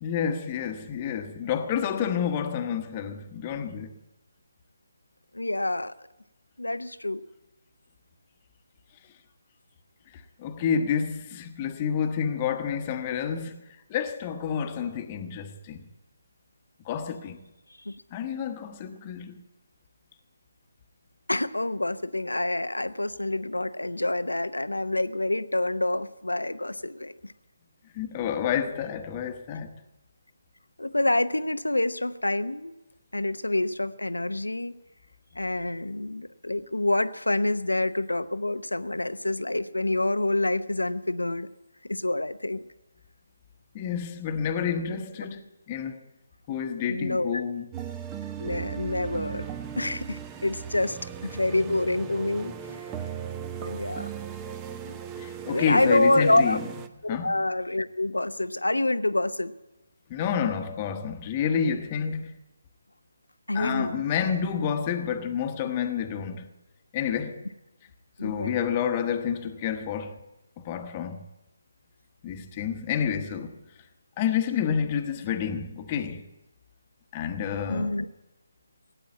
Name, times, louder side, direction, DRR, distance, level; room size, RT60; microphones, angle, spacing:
voice 1, 0.0-4.0 10.1-13.6 13.9-15.9 16.8-17.4 18.1-19.4 27.9-29.7 43.7-46.0 46.5-47.7 55.2-56.6 57.1-57.4 60.1-62.4 63.5-66.5 66.9-67.5 68.2-70.2 70.6-71.3 72.2-73.6 74.2-76.2 77.1-77.9, left 7 dB, 25° left, 1.1 m, -29 dB
voice 2, 5.3-5.9 6.6-7.2 17.8-18.0 21.3-27.3 30.8-32.7 33.1-34.7 35.4-41.5 41.9-42.6 46.8-47.4 48.4-49.5 49.8-52.8 53.6-54.1 54.8-55.0 55.5-56.6 57.0-59.5 63.5-64.0 68.2-68.6 77.7-78.1, left 2 dB, 90° left, 0.8 m, -27 dB
sound 1, 47.7-56.9, right 8 dB, 15° right, 0.8 m, -37 dB
17.0 x 9.0 x 8.6 m
figure-of-eight pair, 150°, 0 cm